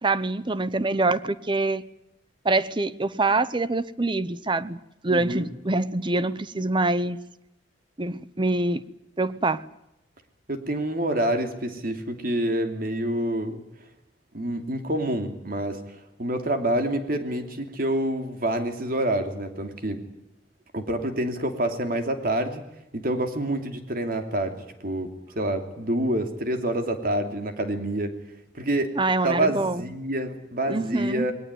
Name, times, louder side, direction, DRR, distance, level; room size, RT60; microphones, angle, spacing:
voice 1, 0.0-1.8 2.4-7.2 8.0-8.8 9.2-9.6 28.9-29.9 30.7-31.3, right 2 dB, 25° right, 15 dB, 0.8 m, -25 dB
voice 2, 5.1-5.5 10.5-13.6 14.3-15.8 16.2-20.0 20.7-22.6 22.9-24.6 24.8-28.1 28.5-28.9 29.2-31.3, right 1 dB, 55° right, 6 dB, 2.9 m, -27 dB
21.5 x 18.5 x 9.4 m, 0.90 s
head